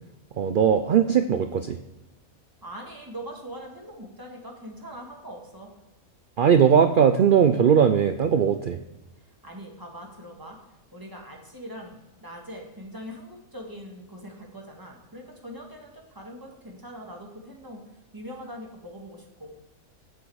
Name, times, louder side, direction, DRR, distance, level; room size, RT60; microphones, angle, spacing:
voice 1, 0.4-1.8 6.4-8.8, right 7 dB, 85° right, 9 dB, 0.4 m, -19 dB
voice 2, 2.6-5.7 9.4-10.6 10.9-17.8 18.1-19.5, equal, 15° right, 0 dB, 1.8 m, -42 dB
9.3 x 7.9 x 4.7 m, 1.0 s
omnidirectional pair, 1.5 m